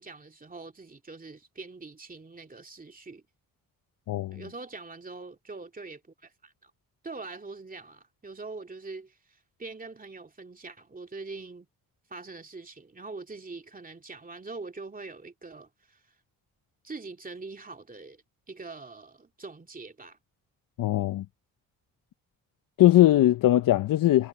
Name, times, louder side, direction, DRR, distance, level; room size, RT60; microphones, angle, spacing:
voice 1, 0.0-3.2 4.3-6.7 7.0-9.2 9.6-11.7 12.1-16.0 16.8-18.2 18.5-20.2, right 3 dB, 25° right, 2.6 m, -43 dB
voice 2, 4.1-4.4 20.8-21.2 22.8-24.3, left 14 dB, 70° left, 0.6 m, -20 dB
cardioid pair, 90°, 34 cm